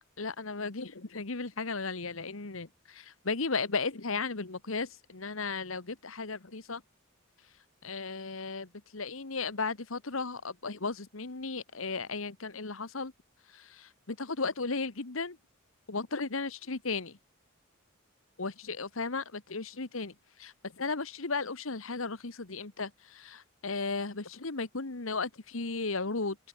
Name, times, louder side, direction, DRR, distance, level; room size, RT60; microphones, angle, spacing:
voice 1, 0.2-6.8 7.8-13.1 13.5-15.4 15.9-17.2 18.4-26.4, left 4 dB, 65° left, 1.5 m, -35 dB
open air
head